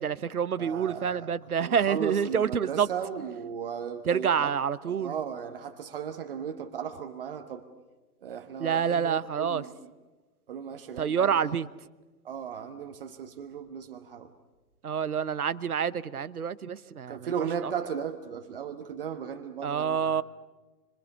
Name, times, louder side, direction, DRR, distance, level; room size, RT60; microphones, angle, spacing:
voice 1, 0.0-2.9 4.1-5.2 8.6-9.6 11.0-11.7 14.8-17.3 17.6-17.7 19.6-20.2, right 7 dB, 60° right, 17 dB, 1.0 m, -27 dB
voice 2, 0.6-1.3 1.6-4.5 4.9-7.7 8.2-9.9 10.5-11.5 12.2-14.3 17.1-20.2, right 7 dB, 35° right, 6 dB, 1.3 m, -36 dB
26.0 x 26.0 x 6.7 m, 1.2 s
figure-of-eight pair, 130°, 50 cm